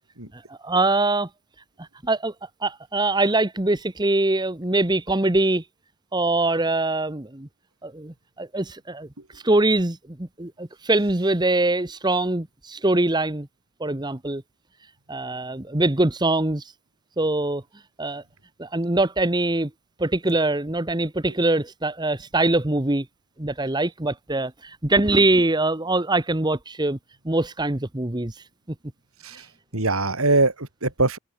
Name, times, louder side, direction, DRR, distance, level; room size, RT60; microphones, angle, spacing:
voice 1, 0.3-1.3 1.8-2.3 2.6-5.6 6.1-7.5 7.8-9.1 9.4-13.5 13.8-14.4 15.1-16.7 17.2-17.6 18.0-18.2 18.6-19.7 20.0-23.1 23.4-27.0 27.2-28.3, right 2 dB, 20° right, 1.2 m, -23 dB
voice 2, 29.7-31.2, right 2 dB, 85° right, 5.1 m, -22 dB
head